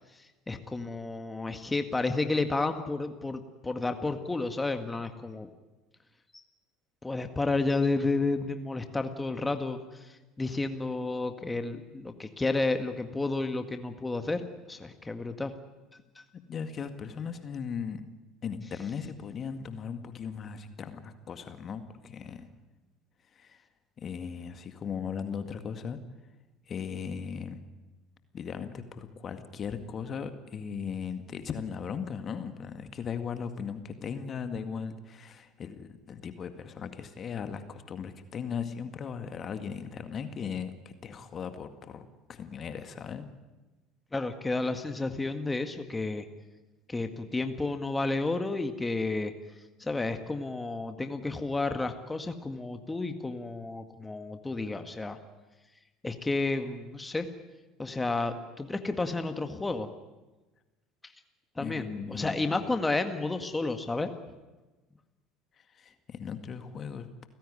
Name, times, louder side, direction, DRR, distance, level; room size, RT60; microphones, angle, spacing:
voice 1, 0.1-5.5 6.3-6.4 7.0-15.5 16.2-16.3 44.1-46.3 46.9-49.3 49.8-55.2 56.0-57.3 57.8-59.9 61.0-61.1 61.6-64.1, left 3 dB, 15° left, 7 dB, 1.8 m, -31 dB
voice 2, 16.5-18.0 18.4-22.5 23.3-23.6 24.0-26.0 26.7-27.6 28.3-43.3 61.6-62.7 65.6-67.3, left 6 dB, 35° left, 9 dB, 2.0 m, -38 dB
29.5 x 16.0 x 9.9 m, 1.2 s
figure-of-eight pair, 65°, 0 cm